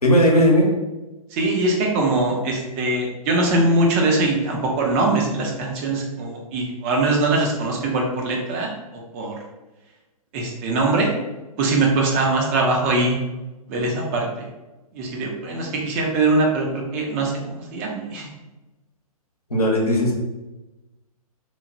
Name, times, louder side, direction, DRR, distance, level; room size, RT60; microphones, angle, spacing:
voice 1, 0.0-0.7 19.5-20.1, equal, 85° left, -1 dB, 0.8 m, -16 dB
voice 2, 1.3-8.7 9.1-9.4 10.3-11.1 11.6-13.2 13.7-14.5 14.9-18.3, right 2 dB, 25° right, 0 dB, 0.4 m, -22 dB
3.0 x 2.0 x 2.5 m, 1.1 s
figure-of-eight pair, 120°, 19 cm